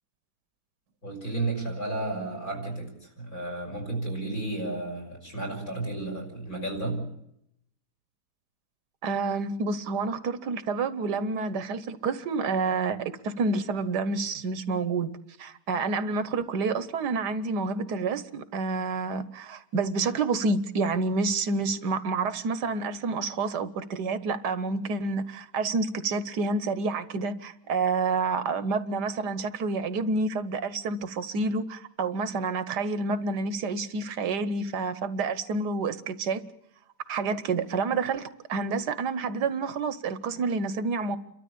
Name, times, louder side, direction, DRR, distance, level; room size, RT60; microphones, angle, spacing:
voice 1, 1.0-7.1, right 2 dB, 55° left, 6.4 m, -32 dB
voice 2, 9.0-15.1 15.4-36.4 37.1-41.2, right 4 dB, 75° right, 1.6 m, -29 dB
29.0 x 13.0 x 8.4 m
omnidirectional pair, 1.8 m